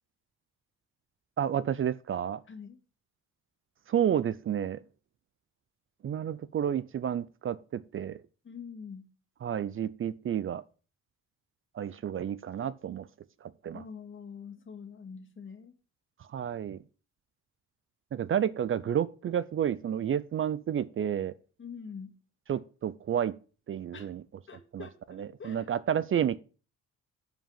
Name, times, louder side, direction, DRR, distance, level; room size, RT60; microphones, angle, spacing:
voice 1, 1.4-2.4 3.9-4.8 6.0-8.2 9.4-10.6 11.7-13.1 13.4-13.8 16.3-16.8 18.1-21.3 22.5-23.4 23.7-24.2 24.7-24.9 25.2-26.4, right 9 dB, 45° right, 0.5 m, -30 dB
voice 2, 2.5-2.8 8.4-9.1 13.7-15.8 21.6-22.2 23.9-24.1 24.5-25.7, left 6 dB, 40° left, 2.0 m, -45 dB
10.5 x 5.2 x 5.6 m
cardioid pair, 90°, 30 cm